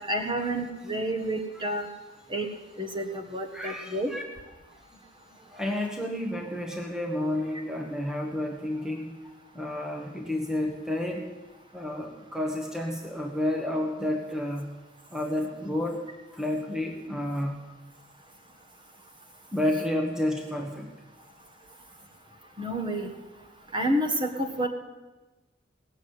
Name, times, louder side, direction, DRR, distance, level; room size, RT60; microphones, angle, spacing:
voice 1, 0.0-1.9 2.3-2.4 2.8-4.1 22.6-23.1 23.7-24.7, right 1 dB, 25° right, 4 dB, 1.5 m, -29 dB
voice 2, 3.5-4.2 5.5-9.1 9.5-11.3 11.7-14.7 15.1-16.0 16.3-17.6 19.5-20.9, left 1 dB, 5° right, 2 dB, 1.2 m, -30 dB
18.0 x 7.2 x 9.5 m, 1.1 s
head